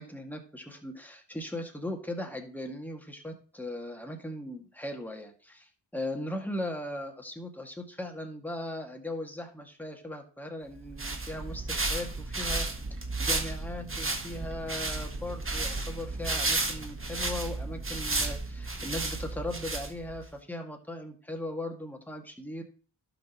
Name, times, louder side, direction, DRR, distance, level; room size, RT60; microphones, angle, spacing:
voice 1, 0.0-12.7 13.2-22.6, left 1 dB, 5° left, 2 dB, 2.1 m, -38 dB
sound 1, 10.7-20.2, right 3 dB, 30° right, 1.5 m, -33 dB
11.5 x 6.2 x 3.1 m, 0.40 s
cardioid pair, 45°, 43 cm